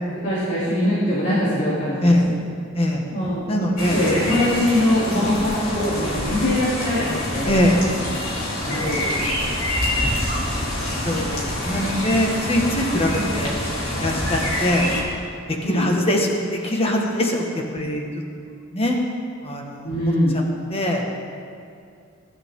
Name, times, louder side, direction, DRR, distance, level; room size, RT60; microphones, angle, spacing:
voice 1, 0.1-2.3 3.1-3.5 3.9-7.5 8.7-9.1 10.2-11.1 13.1-13.3 15.6-15.9 19.8-20.4, left 1 dB, 55° left, -10 dB, 3.5 m, -23 dB
voice 2, 3.5-4.0 7.4-7.9 8.6-8.9 11.0-13.5 13.9-14.8 15.5-17.4 17.7-18.1 18.7-19.0 19.4-19.9 20.7-21.0, left 1 dB, 30° left, 1 dB, 1.7 m, -22 dB
sound 1, 3.8-15.0, left 1 dB, 85° left, 3.4 m, -26 dB
21.5 x 11.5 x 3.8 m, 2.4 s
head